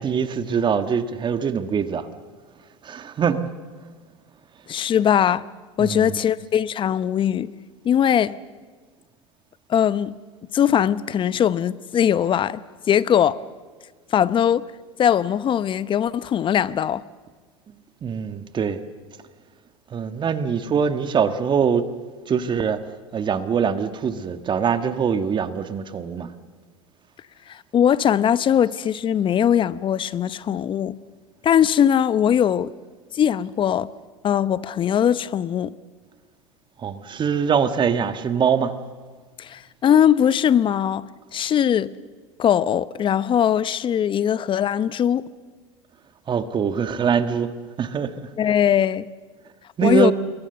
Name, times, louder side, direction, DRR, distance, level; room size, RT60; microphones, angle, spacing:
voice 1, 0.0-2.1 2.8-3.5 5.8-6.2 18.0-18.8 19.9-21.9 22.3-22.8 23.1-26.3 36.8-38.7 46.3-47.5 47.8-48.3 49.8-50.1, right 7 dB, 30° right, 1.6 m, -23 dB
voice 2, 4.7-5.4 5.8-7.5 7.8-8.4 9.7-10.2 10.5-13.4 14.1-14.7 15.0-17.0 27.5-31.0 31.4-32.7 33.1-33.9 34.2-35.7 39.4-41.9 42.4-45.3 48.4-49.1 49.8-50.1, left 9 dB, 35° left, 0.8 m, -20 dB
26.5 x 22.0 x 6.9 m
hypercardioid pair, 85°, 15 cm